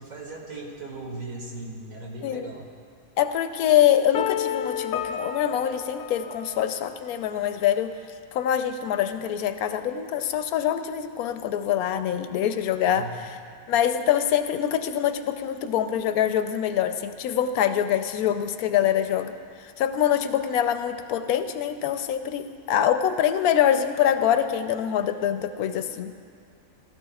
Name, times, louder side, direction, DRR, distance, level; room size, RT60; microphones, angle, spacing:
voice 1, 0.0-2.7 12.9-13.2, right 2 dB, 70° right, -1 dB, 2.0 m, -38 dB
voice 2, 3.2-7.9 8.3-13.1 13.7-19.3 19.8-26.1, left 10 dB, 90° left, 9 dB, 1.1 m, -24 dB
sound 1, 4.1-7.1, left 9 dB, 70° left, 0.5 m, -31 dB
16.0 x 13.5 x 2.3 m, 2.2 s
omnidirectional pair, 1.5 m